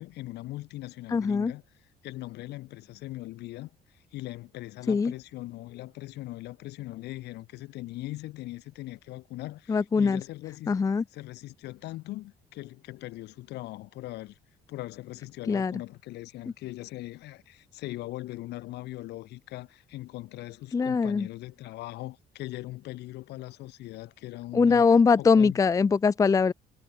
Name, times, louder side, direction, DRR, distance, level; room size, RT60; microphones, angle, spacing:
voice 1, 0.0-1.6 2.0-10.7 11.1-14.4 14.7-24.9 25.2-25.6, left 17 dB, 80° left, 6.1 m, -40 dB
voice 2, 1.1-1.5 4.9-5.1 9.7-10.2 10.7-11.0 15.5-15.7 20.7-21.3 24.5-26.5, left 5 dB, 20° left, 0.5 m, -22 dB
cardioid pair, 110°, 17 cm